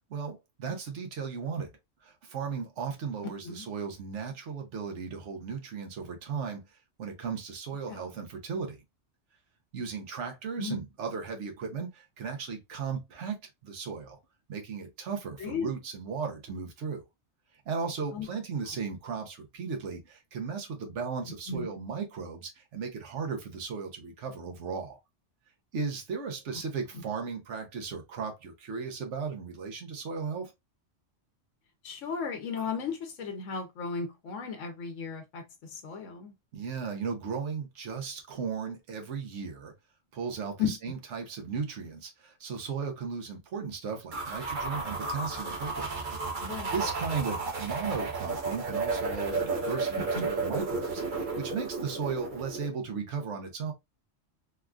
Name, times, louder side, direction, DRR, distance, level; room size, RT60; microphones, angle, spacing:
voice 1, 0.1-1.7 2.0-6.6 7.0-8.8 9.7-14.2 14.5-17.0 17.7-25.0 25.7-30.5 36.5-39.7 40.1-45.9 46.4-53.7, right 5 dB, 75° right, 1.1 m, -36 dB
voice 2, 15.4-15.7 18.1-18.3 21.5-21.7 26.9-27.0 31.8-36.3 40.6-40.7 46.4-46.8 50.0-50.3, left 5 dB, 90° left, 1.0 m, -35 dB
sound 1, 44.1-52.7, right 3 dB, 45° right, 0.8 m, -33 dB
3.5 x 2.3 x 2.3 m
omnidirectional pair, 1.2 m